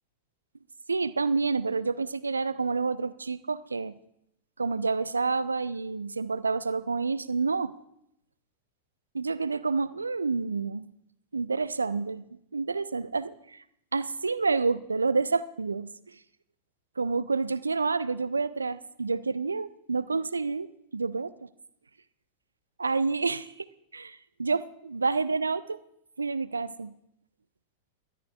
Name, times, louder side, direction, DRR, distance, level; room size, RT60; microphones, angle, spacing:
voice 1, 0.9-3.9 4.6-7.7 9.1-10.9 11.3-12.2 12.5-13.6 13.9-15.9 17.0-20.7 20.9-21.5 22.8-23.6 23.9-25.8 26.2-26.9, right 4 dB, 75° right, 16 dB, 0.4 m, -29 dB
21.5 x 13.5 x 2.4 m, 0.77 s
figure-of-eight pair, 90°, 0 cm